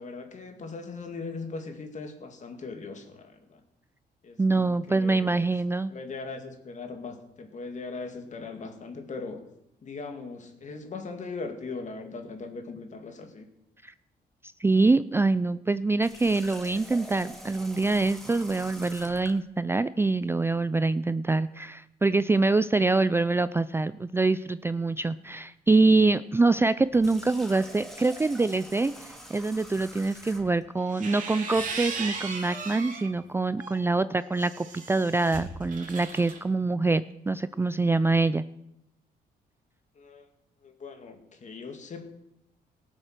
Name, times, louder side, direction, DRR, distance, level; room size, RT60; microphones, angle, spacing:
voice 1, 0.0-3.6 4.2-5.4 5.9-9.4 9.8-13.5 40.0-40.2 40.6-42.1, left 4 dB, 45° left, 6 dB, 2.4 m, -39 dB
voice 2, 4.4-5.9 13.8-13.9 14.6-38.4, right 3 dB, 15° right, 14 dB, 0.4 m, -25 dB
Water tap faucet, 16.0-19.4 26.8-30.6, right 1 dB, ahead, 2.7 m, -45 dB
sound 1, 30.8-33.1 33.6-36.4, right 4 dB, 50° right, 2.9 m, -37 dB
18.0 x 7.4 x 6.7 m, 0.83 s
cardioid pair, 95°, 17 cm